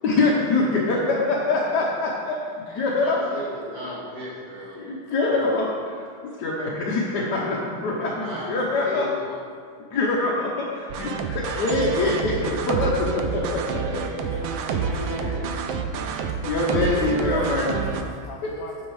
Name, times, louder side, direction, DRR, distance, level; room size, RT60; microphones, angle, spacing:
voice 1, 0.0-3.4 4.7-9.1 9.9-14.0 16.4-17.8 18.4-18.5, left 2 dB, 60° left, -4 dB, 1.3 m, -24 dB
voice 2, 3.0-4.8 8.2-9.4 13.8-15.5 16.7-17.5, equal, 35° right, -7 dB, 2.4 m, -34 dB
sound 1, 10.9-18.0, right 5 dB, 80° right, 1.3 m, -28 dB
voice 3, 13.4-14.4 14.9-15.4 16.6-18.9, left 5 dB, 75° left, 0 dB, 0.8 m, -41 dB
9.3 x 5.4 x 4.7 m, 2.2 s
omnidirectional pair, 2.2 m